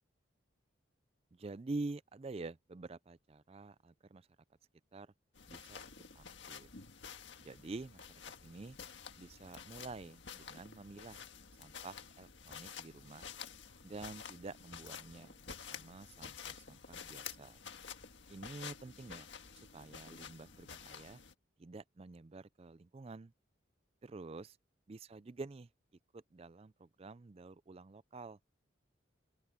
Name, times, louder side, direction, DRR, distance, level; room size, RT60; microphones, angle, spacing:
voice 1, 1.3-4.3 4.9-5.1 5.5-5.8 6.2-6.7 7.4-8.1 8.4-8.8 9.2-11.2 11.6-13.3 13.8-17.6 18.3-19.3 19.5-21.2 21.6-23.3 24.0-24.6 24.9-25.7 26.1-28.4, right 3 dB, 30° right, 0.4 m, -48 dB
sound 1, 5.3-21.3, left 7 dB, 70° left, 1.7 m, -50 dB
open air
head